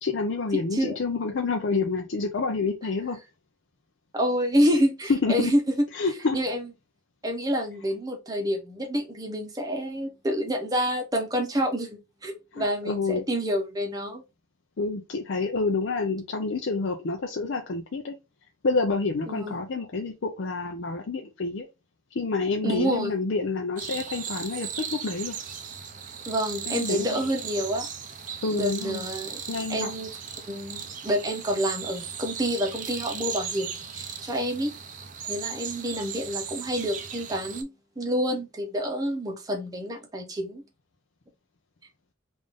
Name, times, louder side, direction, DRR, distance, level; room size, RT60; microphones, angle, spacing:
voice 1, 0.0-3.2 5.1-5.6 5.9-6.4 12.5-13.2 14.8-18.2 18.6-21.7 22.1-25.4 26.7-27.2 28.4-29.0 29.5-29.9, left 3 dB, 65° left, 0.5 m, -28 dB
voice 2, 0.5-0.9 4.1-5.7 6.3-6.7 7.2-14.2 19.3-19.6 22.6-23.1 26.3-27.9 28.5-29.4 29.7-30.1 30.5-34.7 35.2-37.7 38.0-40.6, equal, 20° right, 0.8 m, -28 dB
sound 1, 23.8-37.6, right 7 dB, 40° right, 0.5 m, -37 dB
3.6 x 2.6 x 3.4 m
head